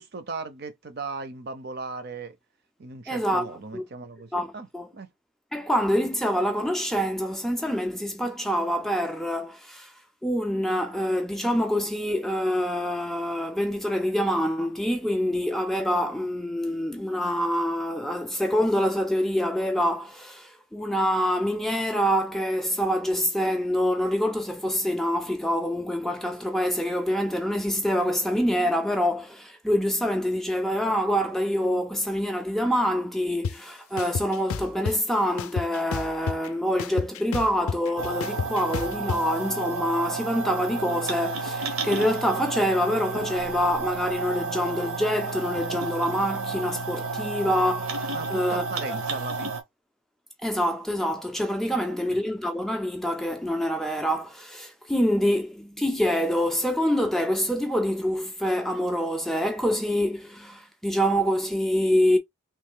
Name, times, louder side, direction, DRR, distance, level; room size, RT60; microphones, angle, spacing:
voice 1, 0.0-2.4 2.8-4.7 4.9-5.1 48.1-49.6 52.1-52.2, right 4 dB, 45° right, 0.6 m, -37 dB
voice 2, 3.1-3.5 3.7-3.8 4.3-4.9 5.5-9.9 10.2-48.6 48.9-49.0 50.4-62.2, equal, ahead, 0.3 m, -26 dB
sound 1, 33.4-33.5 34.0-35.0 35.4-36.5 36.8-39.2, left 5 dB, 85° left, 0.4 m, -30 dB
sound 2, 38.0-49.6, right 3 dB, 85° right, 1.1 m, -31 dB
3.2 x 3.0 x 3.6 m
head